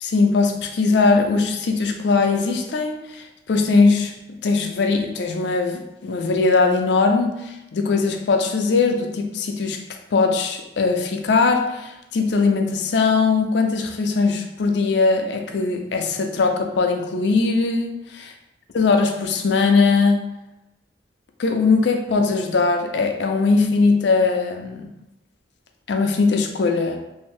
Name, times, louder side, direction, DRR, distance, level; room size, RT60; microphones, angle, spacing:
voice 1, 0.0-9.8 10.1-18.0 18.7-20.2 21.4-24.9 25.9-27.0, left 4 dB, 70° left, 5 dB, 0.4 m, -20 dB
2.7 x 2.5 x 3.1 m, 0.93 s
head